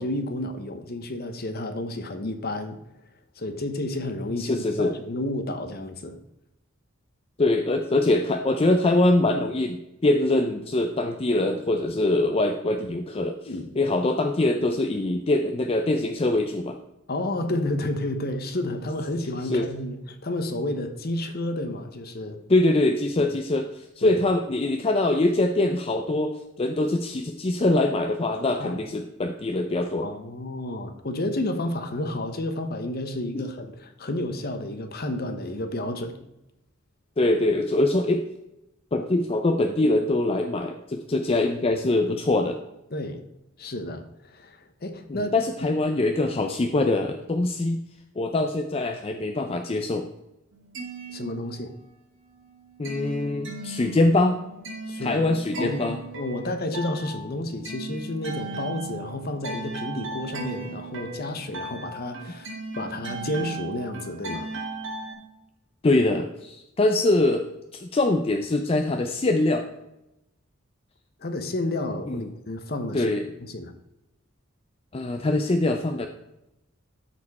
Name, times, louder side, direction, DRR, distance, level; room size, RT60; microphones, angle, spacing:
voice 1, 0.0-2.8 3.4-6.2 13.5-13.7 17.1-22.4 23.2-23.3 24.0-24.2 28.6-28.8 30.0-36.3 42.9-43.2 43.6-45.3 51.1-51.7 54.9-55.2 55.6-64.5 71.2-73.1 73.5-73.7, left 1 dB, 50° left, 8 dB, 0.9 m, -31 dB
voice 2, 4.4-4.9 7.4-13.4 13.8-16.8 19.4-19.7 22.5-30.1 33.3-33.4 37.2-38.2 38.9-42.6 45.1-47.8 48.2-50.1 52.8-54.4 55.0-56.0 65.8-67.4 67.7-69.6 72.1-72.2 72.9-73.2 74.9-76.1, left 2 dB, 30° left, 5 dB, 0.5 m, -23 dB
sound 1, 50.5-52.0 52.3-65.1, right 2 dB, 65° right, 2.4 m, -37 dB
13.0 x 4.5 x 4.2 m, 0.91 s
head